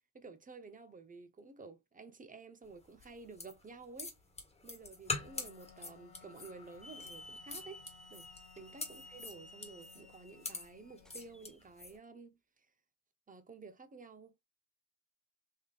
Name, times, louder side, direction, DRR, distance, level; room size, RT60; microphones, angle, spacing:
voice 1, 0.1-4.1 4.6-7.8 8.1-8.3 8.6-12.4 13.3-14.3, right 4 dB, 25° right, 0.9 m, -52 dB
sound 1, 2.9-12.0, left 3 dB, 20° left, 1.7 m, -44 dB
Wind instrument woodwind instrument, 5.2-11.6, left 7 dB, 50° left, 1.2 m, -61 dB
Hiss / Alarm, 6.8-11.6, left 1 dB, ahead, 0.3 m, -55 dB
3.8 x 3.1 x 2.5 m
cardioid pair, 90°, 30 cm